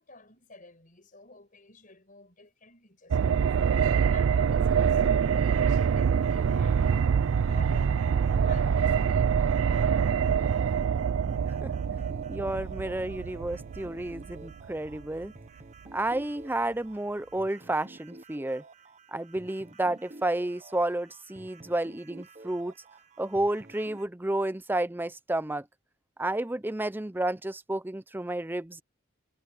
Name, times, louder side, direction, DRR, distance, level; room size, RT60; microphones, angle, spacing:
voice 1, 0.0-10.4, left 3 dB, 40° left, 5.1 m, -52 dB
sound 1, 3.1-15.0 15.2-15.3, right 7 dB, 75° right, 0.4 m, -25 dB
sound 2, 5.0-24.1, right 2 dB, 35° right, 0.9 m, -51 dB
voice 2, 12.3-15.3 15.9-18.6 19.1-22.7 23.2-25.7 26.2-28.8, right 1 dB, 10° right, 0.5 m, -31 dB
head